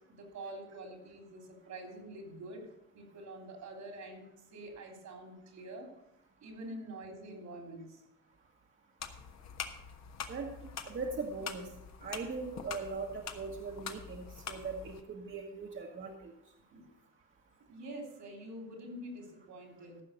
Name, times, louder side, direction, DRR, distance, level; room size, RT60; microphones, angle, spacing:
voice 1, 0.1-2.7 2.9-5.9 6.4-8.0 16.7-16.9 17.7-20.0, right 1 dB, 70° right, 3 dB, 3.2 m, -46 dB
sound 1, 9.0-15.0, left 7 dB, 60° left, 1.3 m, -45 dB
voice 2, 10.9-11.7 12.0-16.3, right 4 dB, 40° right, 0 dB, 1.4 m, -40 dB
14.5 x 5.7 x 6.5 m, 0.85 s
cardioid pair, 90°, 30 cm